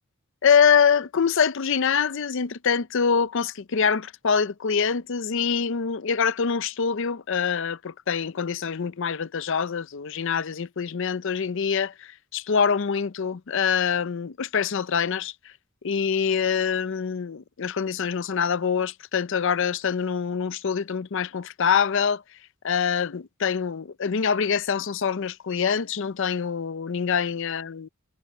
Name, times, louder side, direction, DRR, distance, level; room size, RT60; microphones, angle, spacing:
voice 1, 0.4-15.3 15.8-22.2 22.6-27.9, left 6 dB, 60° left, 0.5 m, -25 dB
head